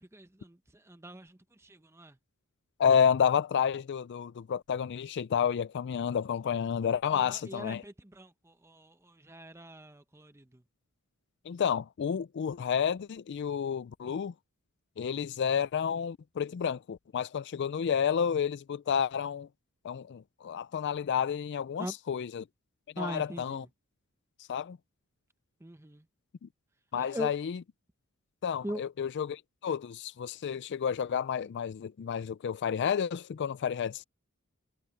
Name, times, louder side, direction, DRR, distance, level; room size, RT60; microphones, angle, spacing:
voice 1, 0.0-2.2 7.1-10.6 21.8-22.0 23.0-23.7 25.6-26.0 26.9-27.3 28.6-28.8, right 1 dB, 10° right, 1.0 m, -42 dB
voice 2, 2.8-7.8 11.5-14.3 15.0-19.5 19.8-22.4 23.0-23.6 24.5-24.8 26.4-26.5 26.9-27.6 28.4-34.0, left 7 dB, 50° left, 0.3 m, -30 dB
head